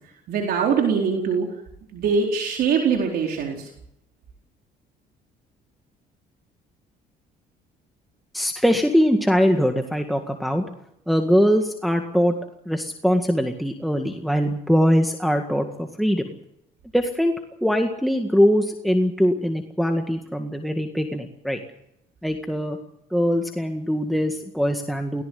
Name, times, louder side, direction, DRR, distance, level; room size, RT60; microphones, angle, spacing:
voice 1, 0.3-1.5 1.9-3.7, right 6 dB, 65° right, 1 dB, 4.3 m, -22 dB
voice 2, 8.3-10.6 11.1-12.4 12.7-16.2 16.9-17.3 17.6-21.6 22.2-22.8 23.1-25.2, equal, ahead, 4 dB, 1.9 m, -22 dB
18.0 x 18.0 x 9.5 m, 0.77 s
cardioid pair, 110°, 17 cm